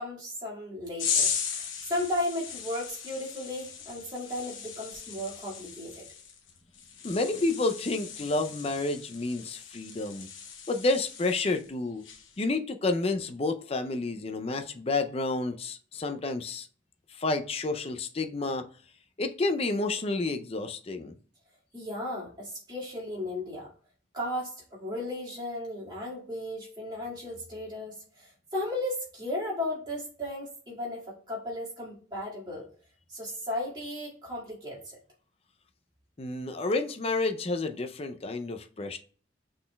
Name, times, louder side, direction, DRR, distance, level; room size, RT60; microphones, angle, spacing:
voice 1, 0.0-6.1 21.7-23.7 24.1-32.7 33.1-35.0, left 1 dB, 20° right, -5 dB, 1.9 m, -35 dB
sound 1, 1.0-11.7 12.0-12.4, left 7 dB, 90° left, 1.0 m, -37 dB
voice 2, 7.0-10.3 10.7-12.0 12.4-16.7 17.2-18.6 19.2-21.1 36.2-39.0, left 3 dB, 30° left, 7 dB, 0.4 m, -30 dB
6.1 x 3.8 x 2.2 m, 0.43 s
head